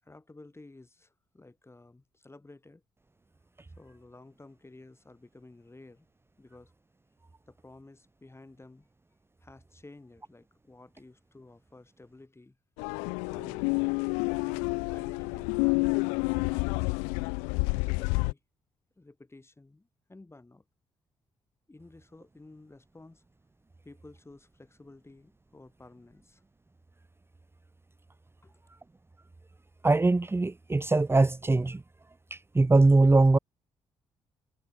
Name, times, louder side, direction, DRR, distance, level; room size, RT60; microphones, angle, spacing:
voice 1, 0.0-2.8 3.7-6.1 6.4-6.7 7.5-8.9 9.4-12.6 13.3-13.7 14.4-16.9 17.6-18.4 19.0-20.6 21.7-23.2 23.8-26.4 28.4-28.5, left 2 dB, 20° left, 7.7 m, -53 dB
sound 1, 12.8-18.3, left 39 dB, 80° left, 0.4 m, -29 dB
voice 2, 29.8-31.8 32.3-33.4, right 3 dB, 20° right, 1.3 m, -22 dB
hypercardioid pair, 45°, 12 cm